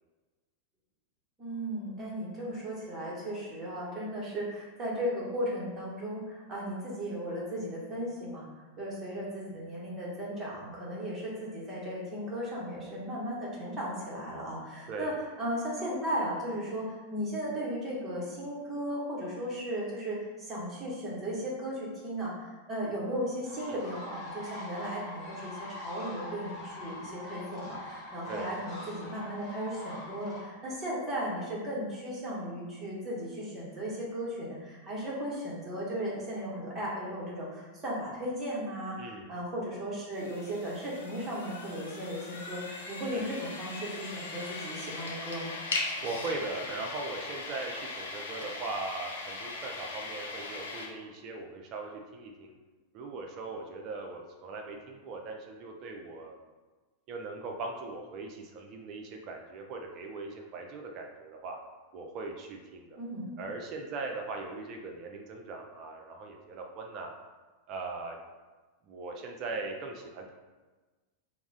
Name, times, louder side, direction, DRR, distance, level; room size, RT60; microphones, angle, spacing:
voice 1, 1.4-8.5 8.8-45.5 63.0-63.3, equal, 20° right, -5 dB, 0.9 m, -36 dB
sound 1, 23.4-30.4, left 1 dB, 30° left, 1.1 m, -43 dB
voice 2, 39.0-39.3 43.1-43.3 46.0-52.5 52.9-56.4 57.1-61.6 61.9-63.0 63.4-67.1 67.7-68.2 68.9-70.3, right 3 dB, 40° right, 2 dB, 0.3 m, -39 dB
sound 2, 40.1-50.9, left 3 dB, 65° left, 0.5 m, -39 dB
2.3 x 2.0 x 3.8 m, 1.3 s
figure-of-eight pair, 90°, 0 cm